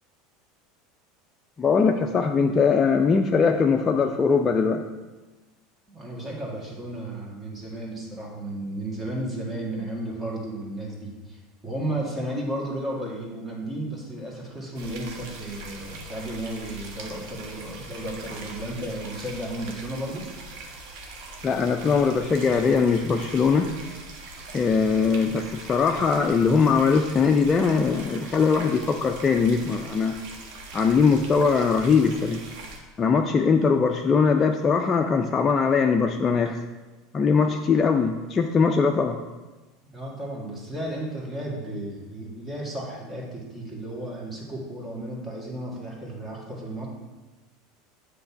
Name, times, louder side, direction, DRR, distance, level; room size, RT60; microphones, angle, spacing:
voice 1, 1.6-4.8 21.4-23.7 24.5-30.1 30.7-32.4 33.0-36.6 37.1-39.2, left 5 dB, 25° left, 3 dB, 0.4 m, -21 dB
voice 2, 5.9-20.3 39.8-46.9, right 1 dB, 15° right, -3 dB, 2.0 m, -33 dB
sound 1, 14.7-32.8, right 2 dB, 70° right, 1.3 m, -41 dB
7.8 x 3.3 x 5.8 m, 1.2 s
supercardioid pair, 115°, 0 cm